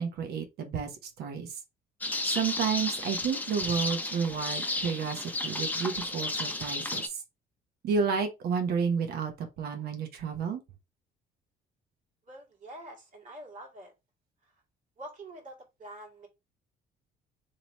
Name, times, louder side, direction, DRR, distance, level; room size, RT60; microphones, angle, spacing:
voice 1, 0.0-1.6 2.2-7.2 7.8-10.6, right 6 dB, 70° right, 0.9 m, -31 dB
sound 1, 2.0-7.1, left 2 dB, 10° left, 0.6 m, -33 dB
voice 2, 12.3-13.9 14.4-14.6 15.0-16.3, right 1 dB, 50° right, 1.9 m, -46 dB
3.0 x 2.9 x 4.1 m
cardioid pair, 110°, 17 cm